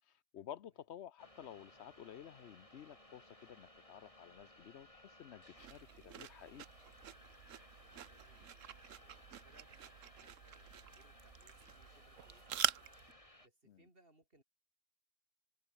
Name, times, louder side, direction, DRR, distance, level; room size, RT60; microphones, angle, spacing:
voice 1, 0.0-6.6 13.7-13.8, left 10 dB, 60° left, 1.0 m, -53 dB
sound 1, 1.2-13.5, left 1 dB, 25° left, 5.1 m, -61 dB
sound 2, 5.6-13.1, right 10 dB, 80° right, 1.2 m, -44 dB
voice 2, 8.1-12.9 13.4-14.4, right 2 dB, 45° right, 6.2 m, -70 dB
omnidirectional pair, 1.3 m